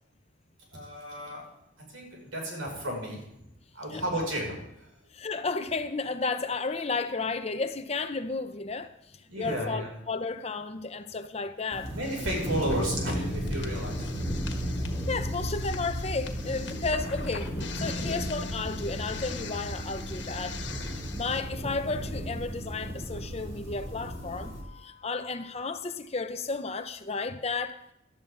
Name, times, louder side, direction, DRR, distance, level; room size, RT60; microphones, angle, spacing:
voice 1, 0.7-1.5 1.8-3.5 3.7-5.0 9.3-9.9 11.9-14.1, equal, 85° right, 6.1 m, -33 dB
voice 2, 5.1-8.9 9.4-11.9 15.1-20.6 21.1-27.8, left 4 dB, 30° left, 0.6 m, -33 dB
sound 1, 11.7-24.6, equal, 30° right, 3.1 m, -34 dB
sound 2, 12.0-21.4, left 3 dB, 55° left, 1.6 m, -41 dB
18.0 x 12.0 x 3.8 m
head